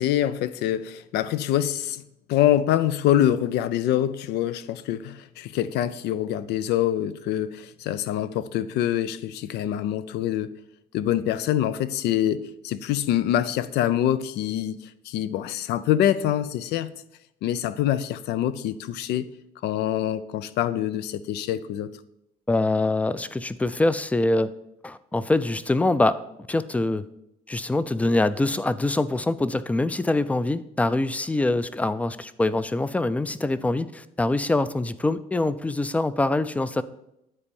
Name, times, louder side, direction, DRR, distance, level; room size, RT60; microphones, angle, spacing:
voice 1, 0.0-2.0 2.3-10.5 10.9-14.8 15.1-16.9 17.4-19.3 19.6-21.9, left 11 dB, 80° left, 0.5 m, -25 dB
voice 2, 22.5-24.5 24.8-26.2 26.5-27.0 27.5-36.8, left 2 dB, 10° left, 0.4 m, -24 dB
9.8 x 4.3 x 5.3 m
cardioid pair, 110°, 17 cm